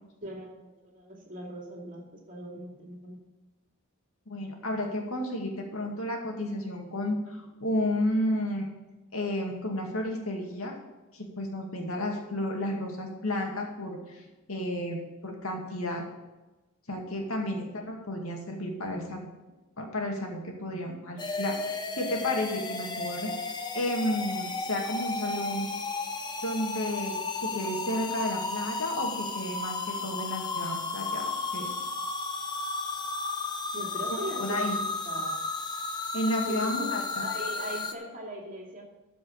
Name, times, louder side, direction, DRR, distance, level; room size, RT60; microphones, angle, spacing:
voice 1, 0.2-3.2 33.7-35.4 36.4-38.8, right 1 dB, 35° right, -1 dB, 2.6 m, -40 dB
voice 2, 4.3-8.7 9.1-10.7 11.1-14.2 14.5-16.0 16.9-19.3 19.8-23.3 23.7-25.7 26.4-27.2 27.4-31.7 34.1-34.8 36.1-37.3, left 1 dB, 70° left, 1 dB, 2.2 m, -32 dB
sound 1, 21.2-37.9, left 3 dB, 20° left, 0.7 m, -33 dB
13.5 x 5.2 x 6.5 m, 1.1 s
head